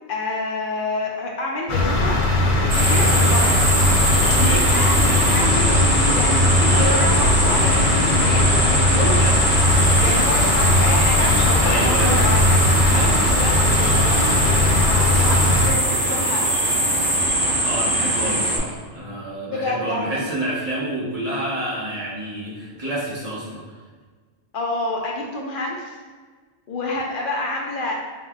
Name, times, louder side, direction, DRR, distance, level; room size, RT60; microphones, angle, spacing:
voice 1, 0.1-2.2 2.6-3.7 4.4-4.9 5.3-5.8 6.1-9.2 10.0-16.5 19.5-20.3 24.5-25.9 26.7-27.9, left 2 dB, 60° left, -1 dB, 0.6 m, -28 dB
sound 1, 1.7-15.7, left 2 dB, 85° left, 0.9 m, -19 dB
sound 2, 2.7-18.6, right 1 dB, 85° right, 1.8 m, -21 dB
voice 2, 4.1-4.8 5.0-5.5 8.9-9.4 9.7-10.2 11.6-12.2 12.8-13.1 17.6-23.6, right 1 dB, 35° right, -7 dB, 1.0 m, -29 dB
3.7 x 3.5 x 2.3 m, 1.5 s
omnidirectional pair, 1.2 m